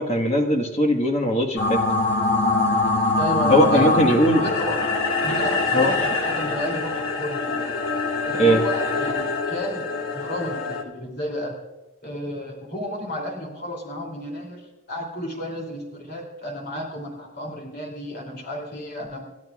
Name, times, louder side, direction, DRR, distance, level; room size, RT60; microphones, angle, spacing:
voice 1, 0.0-1.8 3.5-4.4 5.7-5.9 8.4-8.6, equal, 30° left, 4 dB, 1.5 m, -19 dB
sound 1, 1.6-10.8, left 3 dB, 75° left, 1.8 m, -24 dB
voice 2, 3.2-4.8 5.2-7.8 8.3-9.9 10.1-11.6 12.0-19.3, equal, 45° left, 1 dB, 2.9 m, -32 dB
28.0 x 12.0 x 2.4 m, 1.0 s
head